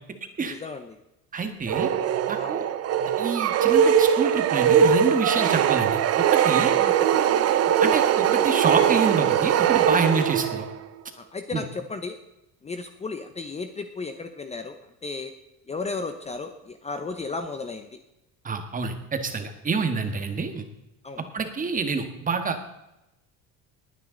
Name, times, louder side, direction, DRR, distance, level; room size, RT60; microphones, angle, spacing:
voice 1, 0.5-1.0 2.4-2.6 6.8-7.2 7.7-7.8 11.2-12.2 12.6-15.3 15.7-18.0 21.0-21.3, left 4 dB, 20° left, 7 dB, 0.9 m, -34 dB
voice 2, 1.3-1.9 2.3-2.6 3.2-6.0 6.3-6.7 7.8-10.7 11.5-11.6 18.4-20.6 21.3-22.6, right 4 dB, 25° right, 7 dB, 1.6 m, -27 dB
sound 1, 1.7-10.8, right 9 dB, 45° right, 0.9 m, -21 dB
20.0 x 9.3 x 3.9 m, 0.92 s
cardioid pair, 140°, 35 cm